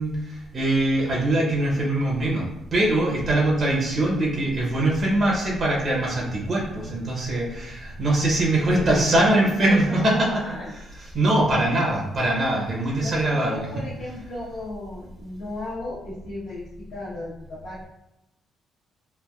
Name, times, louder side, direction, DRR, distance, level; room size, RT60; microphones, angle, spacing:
voice 1, 0.0-10.3 11.1-13.7, right 1 dB, 50° right, -3 dB, 0.8 m, -22 dB
voice 2, 8.7-10.8 13.0-17.9, left 1 dB, 85° left, -11 dB, 1.1 m, -35 dB
3.2 x 2.4 x 2.4 m, 0.89 s
cardioid pair, 90°, 0 cm